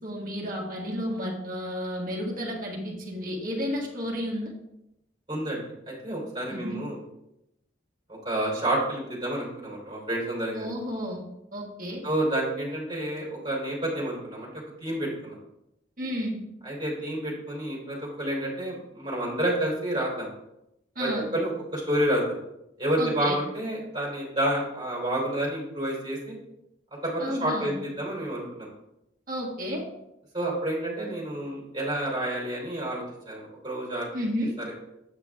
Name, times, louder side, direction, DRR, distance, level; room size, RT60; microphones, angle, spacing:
voice 1, 0.0-4.5 6.5-6.8 10.5-11.2 11.5-12.0 16.0-16.4 20.9-21.3 23.0-23.4 27.2-27.7 29.3-29.8 34.1-34.5, equal, 45° right, -1 dB, 1.7 m, -32 dB
voice 2, 5.3-7.0 8.2-10.7 12.0-14.5 14.8-15.4 16.6-20.3 21.0-22.2 22.8-26.3 27.0-28.7 30.3-34.1, right 1 dB, 20° right, -5 dB, 3.1 m, -29 dB
8.2 x 6.0 x 3.5 m, 0.85 s
head